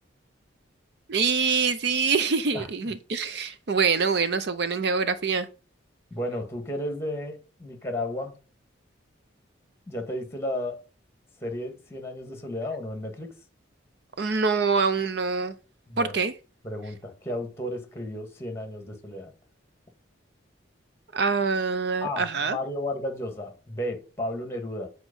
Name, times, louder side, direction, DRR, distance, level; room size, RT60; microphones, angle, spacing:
voice 1, 1.1-5.5 14.2-15.5 16.0-16.3 21.1-22.6, right 5 dB, 55° right, 0.5 m, -25 dB
voice 2, 6.1-8.3 9.9-10.8 11.4-13.3 15.9-16.1 16.6-19.3 22.0-24.9, left 1 dB, 15° left, 1.7 m, -33 dB
8.1 x 4.4 x 5.4 m
head